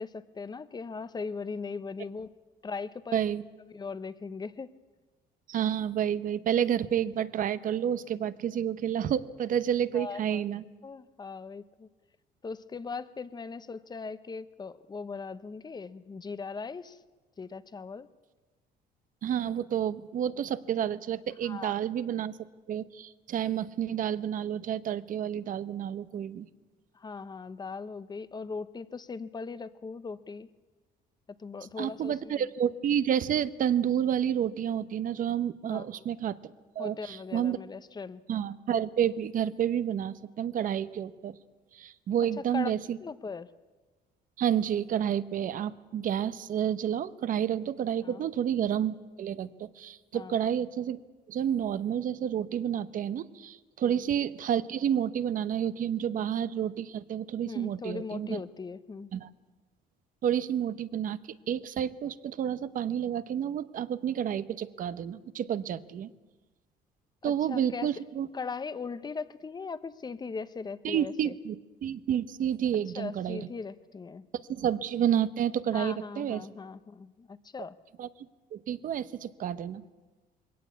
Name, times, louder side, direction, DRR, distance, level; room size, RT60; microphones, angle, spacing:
voice 1, 0.0-2.3 2.6-3.2 3.7-4.8 9.9-10.4 10.8-11.9 12.4-17.0 17.4-18.1 21.4-21.8 26.9-30.5 31.4-32.4 35.7-36.0 36.8-38.2 42.4-42.7 43.0-43.5 48.0-48.2 50.1-50.4 53.8-54.0 57.4-59.1 67.2-67.9 68.3-71.3 73.0-74.3 75.7-77.8, left 4 dB, 25° left, 14 dB, 0.8 m, -39 dB
voice 2, 3.1-3.4 5.5-10.6 19.2-22.3 22.7-26.5 31.8-37.6 38.3-41.4 41.7-43.0 44.4-51.0 51.3-58.4 59.1-59.3 60.2-66.1 67.2-68.3 70.8-71.6 71.8-73.5 74.3-76.4 78.0-78.1 78.5-79.8, right 9 dB, 55° right, 15 dB, 0.9 m, -30 dB
21.5 x 17.5 x 8.3 m, 1.3 s
cardioid pair, 110°, 17 cm